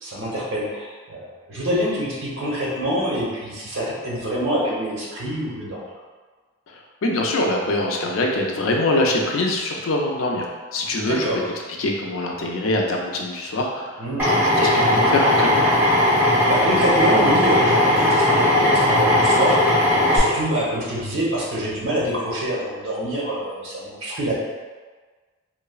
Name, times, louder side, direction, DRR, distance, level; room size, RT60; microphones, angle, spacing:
voice 1, 0.0-5.8 11.0-11.4 14.0-14.3 16.4-24.4, equal, 80° right, -5 dB, 0.8 m, -26 dB
voice 2, 6.7-10.5 10.7-11.3 11.8-14.0 14.2-15.7, left 1 dB, 80° left, 0 dB, 0.4 m, -23 dB
Drill, 14.2-20.2, left 1 dB, 10° right, 0.6 m, -18 dB
3.1 x 2.0 x 2.3 m, 1.4 s
head